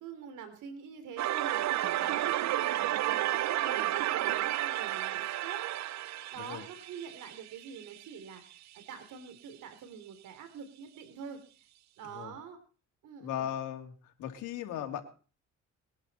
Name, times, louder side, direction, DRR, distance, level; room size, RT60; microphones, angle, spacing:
voice 1, 0.0-11.4 12.0-12.6 13.0-13.5, right 7 dB, 80° right, 8 dB, 3.4 m, -46 dB
sound 1, 1.2-8.0, right 14 dB, 65° right, 0.6 m, -32 dB
voice 2, 13.2-13.9 14.2-15.0, left 10 dB, 85° left, 4 dB, 2.9 m, -37 dB
21.5 x 11.5 x 4.3 m, 0.38 s
cardioid pair, 90°, 30 cm